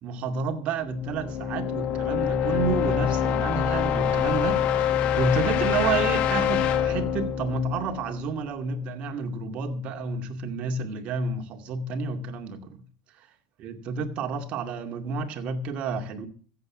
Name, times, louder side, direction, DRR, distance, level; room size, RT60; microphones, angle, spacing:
voice 1, 0.0-12.8 13.6-16.3, right 4 dB, 55° right, 2.3 m, -30 dB
sound 1, 0.9-8.7, left 8 dB, 55° left, 1.3 m, -25 dB
15.0 x 8.0 x 6.2 m
supercardioid pair, 110°, 3 cm